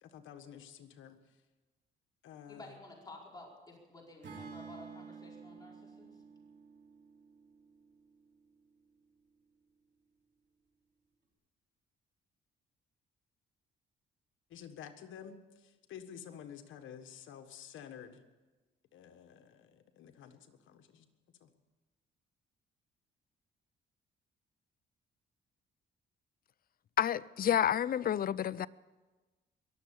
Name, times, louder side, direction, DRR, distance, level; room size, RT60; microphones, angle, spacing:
voice 1, 0.0-1.2 2.2-2.7 14.5-18.2 18.9-21.1 21.4-21.5, left 8 dB, 80° left, 1.5 m, -51 dB
voice 2, 2.5-6.1, left 2 dB, 20° left, 4.8 m, -52 dB
Acoustic guitar / Strum, 4.2-8.4, right 5 dB, 60° right, 3.9 m, -51 dB
voice 3, 27.0-28.7, left 10 dB, 50° left, 0.5 m, -29 dB
22.5 x 7.6 x 8.5 m
cardioid pair, 90°, 20 cm